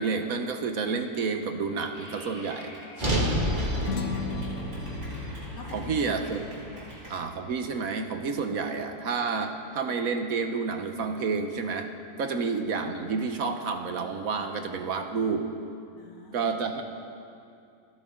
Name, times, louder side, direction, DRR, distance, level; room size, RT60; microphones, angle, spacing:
voice 1, 0.0-2.7 4.1-4.3 5.7-6.4 7.1-11.9 12.2-15.5 16.3-16.8, right 5 dB, 60° right, 6 dB, 1.3 m, -30 dB
Clapping / Cheering, 1.9-7.1, equal, 75° right, 5.0 m, -47 dB
voice 2, 3.0-3.9 5.5-6.2 6.7-6.9 12.3-12.4 16.0-16.7, left 5 dB, 85° left, 1 dB, 2.2 m, -47 dB
sound 1, 3.0-7.2, equal, 30° right, 2.3 m, -30 dB
sound 2, 3.6-8.3, left 6 dB, 50° left, 1.2 m, -39 dB
29.5 x 11.0 x 3.8 m, 2.5 s
omnidirectional pair, 1.8 m